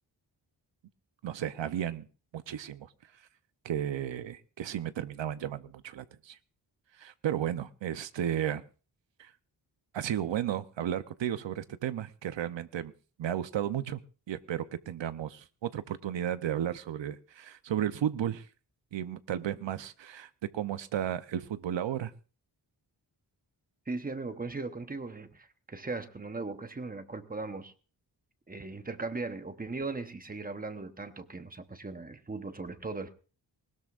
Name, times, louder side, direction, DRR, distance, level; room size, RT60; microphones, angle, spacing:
voice 1, 1.2-2.1 2.3-2.9 3.6-6.4 7.0-8.6 9.2-9.3 9.9-12.9 13.2-14.0 14.3-18.5 18.9-22.1, right 10 dB, 85° right, 12 dB, 0.8 m, -33 dB
voice 2, 23.9-27.7 28.5-33.1, right 3 dB, 20° right, 9 dB, 1.0 m, -38 dB
20.0 x 19.0 x 2.5 m, 0.35 s
wide cardioid pair, 175°, 43 cm